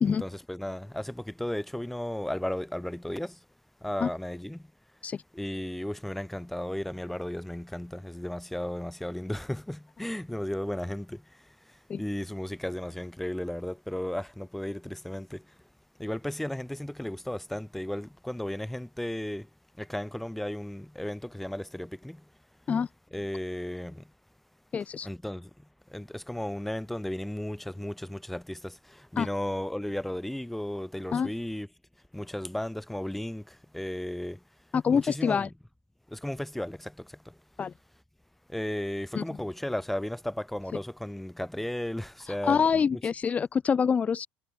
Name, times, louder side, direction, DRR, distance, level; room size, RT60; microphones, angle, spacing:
voice 1, 0.0-3.3 3.8-4.6 5.3-11.2 12.0-15.4 16.0-19.5 19.8-22.2 23.1-24.0 25.0-25.5 25.9-31.7 32.1-34.4 34.9-35.5 36.1-37.3 38.5-42.6 42.9-43.0, left 1 dB, 5° left, 1.6 m, -34 dB
voice 2, 24.7-25.1 29.2-29.3 31.1-31.3 34.7-35.5 37.6-37.7 39.1-39.2 42.3-44.3, left 6 dB, 30° left, 0.9 m, -26 dB
hypercardioid pair, 75°, 5 cm